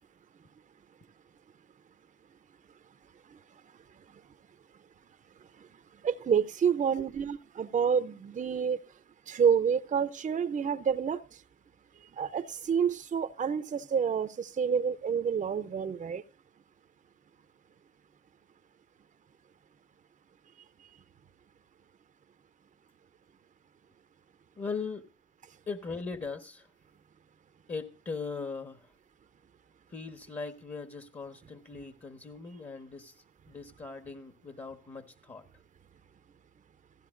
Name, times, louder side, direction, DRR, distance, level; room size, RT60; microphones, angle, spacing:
voice 1, 6.0-8.8 9.3-11.2 12.2-16.2, right 7 dB, 40° right, 0.7 m, -28 dB
voice 2, 24.6-25.1 25.7-26.7 27.7-28.9 29.9-35.5, left 4 dB, 30° left, 1.2 m, -39 dB
16.0 x 14.5 x 2.5 m
supercardioid pair, 65°, 21 cm